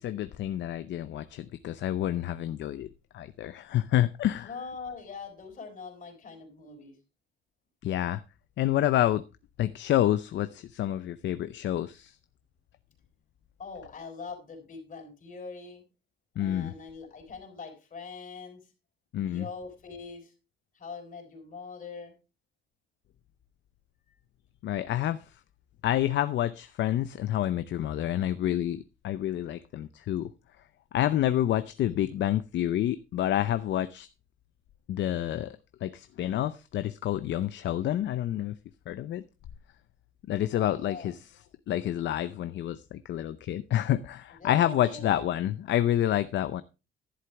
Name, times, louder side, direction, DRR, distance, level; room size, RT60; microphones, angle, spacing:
voice 1, 0.0-2.9 3.1-4.5 7.8-8.2 8.6-9.2 9.6-12.2 16.4-16.7 19.1-19.5 24.6-25.3 25.8-30.3 30.9-34.1 34.9-38.6 38.9-39.2 40.3-41.2 41.7-46.6, left 12 dB, 60° left, 0.6 m, -28 dB
voice 2, 4.4-7.0 13.6-15.8 16.4-18.7 19.3-20.3 20.7-22.1 24.1-24.2 40.5-41.2 44.4-45.2, left 4 dB, 40° left, 4.3 m, -42 dB
11.5 x 11.0 x 3.4 m
cardioid pair, 135°, 21 cm